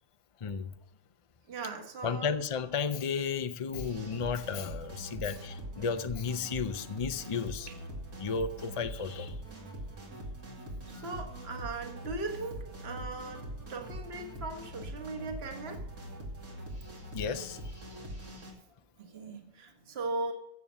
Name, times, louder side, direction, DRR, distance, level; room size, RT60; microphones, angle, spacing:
voice 1, 0.4-0.7 2.0-7.7 8.2-9.3 10.9-11.2 17.1-17.6, left 5 dB, 55° left, 10 dB, 0.3 m, -33 dB
voice 2, 1.5-2.3 10.9-15.8 17.9-18.1 19.0-20.3, right 3 dB, 45° right, 4 dB, 1.7 m, -39 dB
sound 1, 3.7-18.5, right 1 dB, 75° right, 3.1 m, -43 dB
15.0 x 7.2 x 6.2 m, 0.82 s
omnidirectional pair, 1.6 m